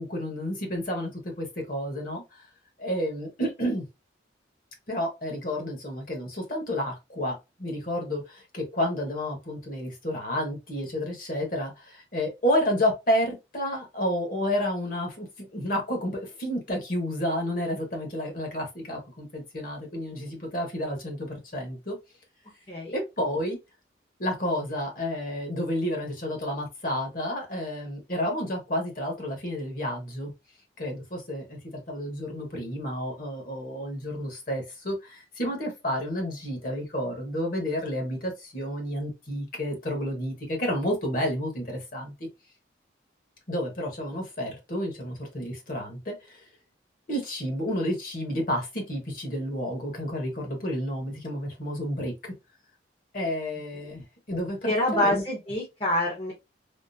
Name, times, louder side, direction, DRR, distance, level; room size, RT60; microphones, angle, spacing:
voice 1, 0.0-2.2 2.8-3.8 4.9-7.3 7.6-22.0 22.9-23.6 24.2-30.3 30.8-42.1 43.5-46.5 47.1-52.3 53.1-55.2, equal, 50° left, 1.2 m, -30 dB
voice 2, 22.7-23.0 54.6-56.3, left 1 dB, 30° left, 0.8 m, -26 dB
3.6 x 2.0 x 2.6 m
head